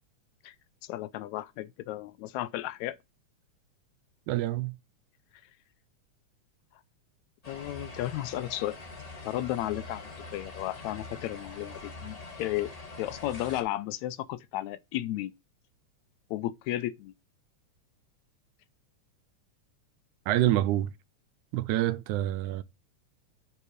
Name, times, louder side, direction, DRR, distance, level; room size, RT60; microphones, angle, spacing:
voice 1, 0.9-3.0 7.5-8.8 9.3-12.7 13.0-15.3 16.3-17.1, left 14 dB, 80° left, 1.8 m, -34 dB
voice 2, 4.3-4.8 20.3-20.9 21.5-22.6, right 14 dB, 85° right, 2.1 m, -27 dB
sound 1, 7.4-13.6, left 3 dB, 20° left, 0.9 m, -44 dB
8.3 x 4.5 x 5.0 m
omnidirectional pair, 3.5 m